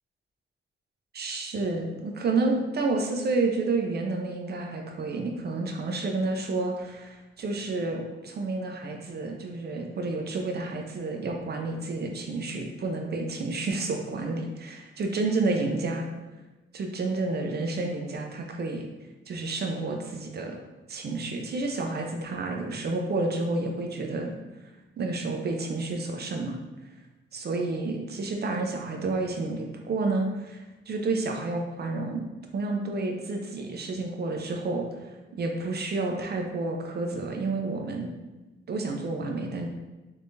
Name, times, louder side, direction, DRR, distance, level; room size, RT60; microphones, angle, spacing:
voice 1, 1.1-16.1 16.7-18.9 19.3-20.6 20.9-24.3 25.0-26.6 27.3-30.6 30.9-32.3 32.5-34.9 35.4-38.1 38.7-39.7, right 3 dB, 55° right, 2 dB, 0.6 m, -30 dB
3.4 x 3.3 x 2.7 m, 1.1 s
cardioid pair, 85°, 20 cm